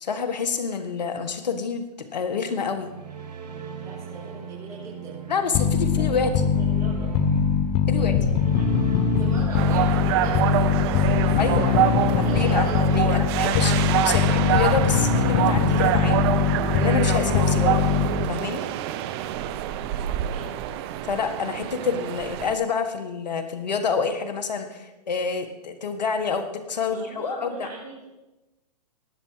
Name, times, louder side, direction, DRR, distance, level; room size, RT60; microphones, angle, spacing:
voice 1, 0.0-1.8 2.1-2.9 5.3-6.5 7.9-8.1 11.4-11.7 12.2-16.2 16.7-17.8 18.3-18.6 21.1-27.7, left 5 dB, 80° left, 7 dB, 1.6 m, -27 dB
sound 1, 2.5-17.8, right 7 dB, 75° right, 1.8 m, -40 dB
voice 2, 3.8-5.3 5.9-7.2 7.9-13.3 20.1-20.7 22.1-22.5 26.8-28.2, right 3 dB, 15° right, -8 dB, 5.6 m, -41 dB
sound 2, 5.5-18.5, left 6 dB, 35° left, 1.0 m, -22 dB
sound 3, 9.5-22.5, right 11 dB, 40° right, 0.8 m, -26 dB
19.5 x 7.1 x 4.8 m, 1.0 s
hypercardioid pair, 135°, 21 cm